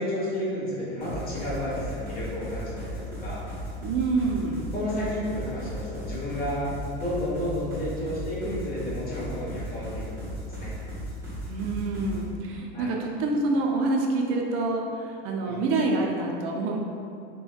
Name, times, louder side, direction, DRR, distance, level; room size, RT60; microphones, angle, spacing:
voice 1, 0.0-3.4 4.7-6.7 6.9-10.7 12.7-12.9 15.4-15.6, left 1 dB, 30° left, -8 dB, 1.1 m, -32 dB
sound 1, 1.0-12.2, equal, 5° right, 1.0 m, -36 dB
voice 2, 3.8-4.7 11.5-16.8, right 3 dB, 45° right, 0 dB, 0.5 m, -27 dB
3.3 x 2.1 x 2.3 m, 2.5 s
hypercardioid pair, 95°, 30 cm